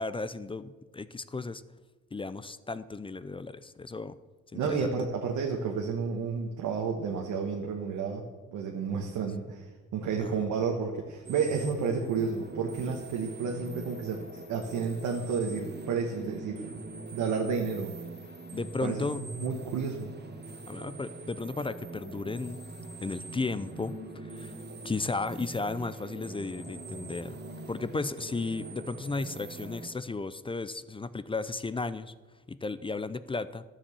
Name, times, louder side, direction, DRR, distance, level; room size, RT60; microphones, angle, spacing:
voice 1, 0.0-1.6 2.1-4.2 4.5-5.0 10.2-10.3 18.5-19.2 20.7-22.6 23.0-24.5 24.8-27.4 27.7-32.1 32.5-33.6, left 3 dB, 15° left, 15 dB, 0.5 m, -34 dB
voice 2, 4.5-9.6 9.9-16.8 17.1-17.9 18.8-19.0 19.3-20.1, right 5 dB, 80° right, 1 dB, 1.4 m, -31 dB
sound 1, 11.2-29.9, right 2 dB, 35° right, 1.7 m, -43 dB
12.5 x 7.3 x 7.0 m, 1.3 s
cardioid pair, 90°, 30 cm